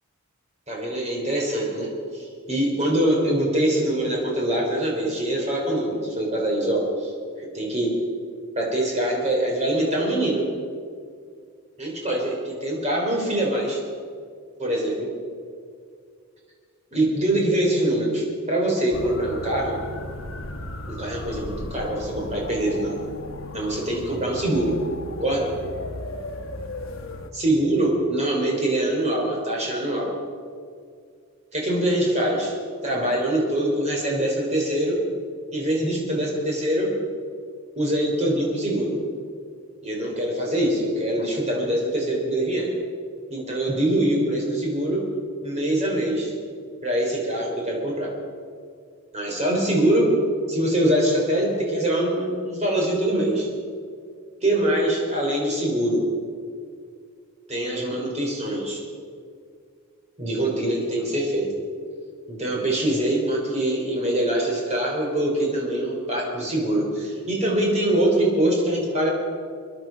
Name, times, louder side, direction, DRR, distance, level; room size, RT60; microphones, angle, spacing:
voice 1, 0.7-7.1 7.4-7.9 8.5-10.4 11.8-13.8 14.6-15.1 16.9-19.8 20.9-23.0 23.5-24.7 25.2-25.5 27.3-30.1 31.5-32.6 32.8-35.0 35.5-36.9 37.8-39.0 39.8-42.7 43.3-45.0 45.4-46.3 46.8-48.1 49.1-50.1 50.5-53.5 54.4-56.0 57.5-58.8 60.2-61.5 62.3-69.1, right 1 dB, 30° right, -1 dB, 3.8 m, -24 dB
sound 1, 18.9-27.3, left 1 dB, 60° left, 1.3 m, -36 dB
23.5 x 11.0 x 5.2 m, 2.2 s
head